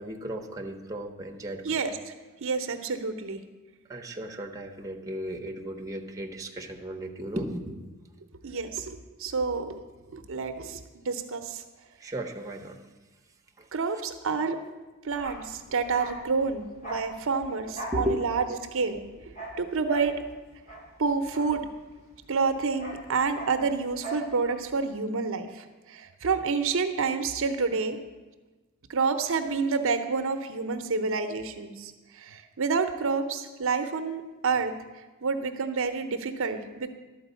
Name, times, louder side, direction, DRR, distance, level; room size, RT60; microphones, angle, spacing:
voice 1, 0.0-1.6 3.9-7.8 12.0-12.8 13.6-13.7 17.9-18.2, right 1 dB, 15° right, 3 dB, 0.9 m, -34 dB
voice 2, 1.6-2.1 2.4-3.4 8.4-9.9 10.1-11.6 13.7-14.6 15.0-18.5 18.7-20.1 21.0-21.6 22.3-28.0 28.9-34.7 35.2-36.9, right 4 dB, 65° right, 8 dB, 0.7 m, -29 dB
Bark, 15.1-22.1 22.4-24.3 24.6-24.8, right 1 dB, 35° left, 2.2 m, -41 dB
12.0 x 4.6 x 8.1 m, 1.2 s
head